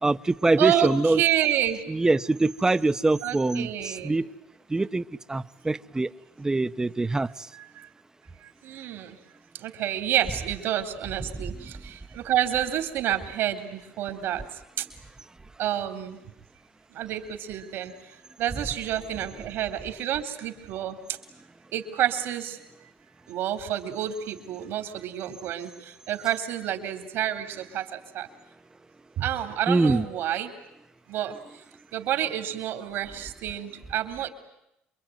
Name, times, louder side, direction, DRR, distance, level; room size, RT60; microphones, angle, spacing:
voice 1, 0.0-1.2 1.9-4.3 4.7-6.1 6.4-7.5 29.7-30.0, right 2 dB, 15° right, 1.0 m, -24 dB
voice 2, 0.6-1.8 3.2-4.2 7.8-7.9 8.4-9.2 9.5-14.9 15.6-16.2 16.9-21.2 21.7-22.9 23.3-28.3 29.2-30.5 31.1-31.4 31.9-34.3, right 11 dB, 70° right, 3.6 m, -29 dB
27.5 x 23.0 x 9.4 m
supercardioid pair, 90°, 4 cm